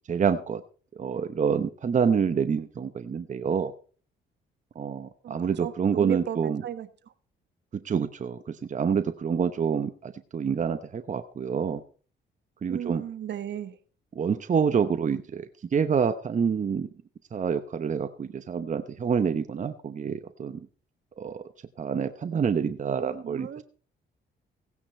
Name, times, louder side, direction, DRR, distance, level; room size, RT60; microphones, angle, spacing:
voice 1, 0.1-0.6 1.0-3.7 4.7-6.6 7.8-11.8 12.6-13.0 14.1-16.9 17.3-20.6 21.2-21.4 21.8-23.6, right 6 dB, 40° right, 0.9 m, -27 dB
voice 2, 5.2-6.9 12.7-13.8 23.2-23.6, right 10 dB, 60° right, 1.3 m, -35 dB
16.5 x 9.7 x 4.4 m
cardioid pair, 90°, 20 cm